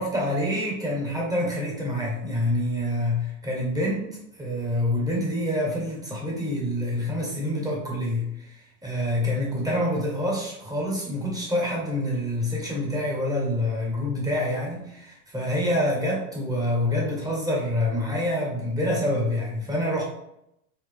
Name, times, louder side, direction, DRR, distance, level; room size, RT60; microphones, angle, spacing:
voice 1, 0.0-4.0 4.4-8.5 8.8-20.0, left 1 dB, 10° right, -3 dB, 1.3 m, -26 dB
4.2 x 2.3 x 3.6 m, 0.79 s
hypercardioid pair, 90°, 42 cm